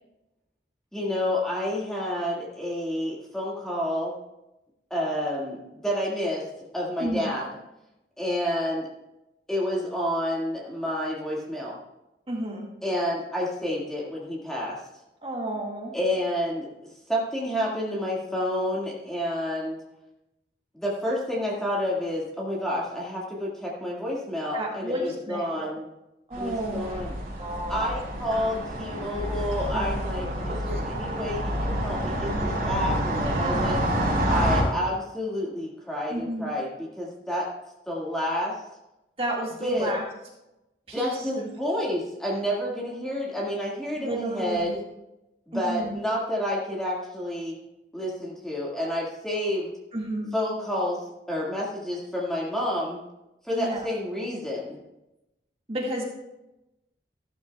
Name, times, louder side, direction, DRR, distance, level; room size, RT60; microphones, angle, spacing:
voice 1, 0.9-4.1 4.9-6.5 6.7-7.5 8.2-8.9 9.5-11.8 12.8-14.8 15.9-16.7 17.1-19.8 20.7-25.9 26.3-27.2 27.7-33.8 34.3-37.5 37.9-38.6 39.6-39.9 40.9-44.8 45.5-47.6 47.9-49.7 50.3-53.0 53.4-54.8, left 1 dB, 5° left, -4 dB, 2.0 m, -29 dB
voice 2, 7.0-7.3 12.3-12.7 15.2-16.0 24.5-25.7 26.3-27.0 27.4-27.9 29.7-30.8 33.2-33.8 36.1-36.5 39.2-40.0 40.9-41.5 44.0-44.7 45.5-45.9 49.9-50.3 53.5-53.9 55.7-56.0, right 1 dB, 30° right, -2 dB, 1.9 m, -32 dB
sound 1, 26.3-34.6, right 1 dB, 50° right, 4.7 m, -28 dB
14.0 x 13.0 x 2.4 m, 0.93 s
head